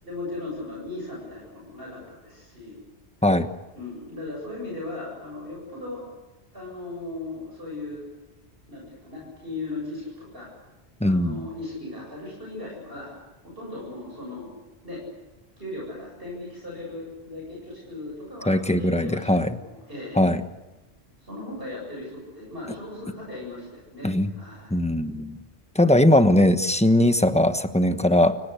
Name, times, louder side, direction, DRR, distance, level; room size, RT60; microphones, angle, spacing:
voice 1, 0.0-2.8 3.7-6.0 6.5-8.0 8.7-10.5 11.0-13.2 13.4-14.5 14.8-15.0 15.6-20.2 21.2-24.8, left 2 dB, 60° right, -2 dB, 8.2 m, -37 dB
voice 2, 11.0-11.5 18.5-19.6 20.2-20.4 24.0-24.3 24.7-25.4 25.7-28.4, left 1 dB, 5° left, 9 dB, 1.2 m, -20 dB
29.5 x 17.5 x 8.3 m, 1.1 s
omnidirectional pair, 1.1 m